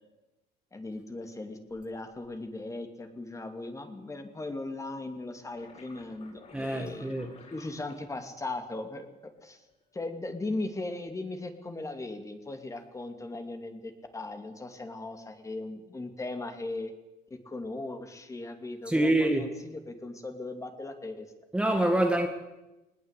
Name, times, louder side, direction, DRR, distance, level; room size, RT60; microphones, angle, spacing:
voice 1, 0.7-7.1 7.5-9.6 9.9-16.9 17.3-21.3, left 2 dB, 20° left, 2.6 m, -38 dB
sound 1, 5.5-8.5 9.3-9.8, left 4 dB, 40° left, 7.3 m, -53 dB
voice 2, 6.5-7.3 18.9-19.4 21.5-22.3, right 1 dB, 5° right, 1.9 m, -25 dB
20.0 x 19.5 x 8.3 m
cardioid pair, 120°, 18 cm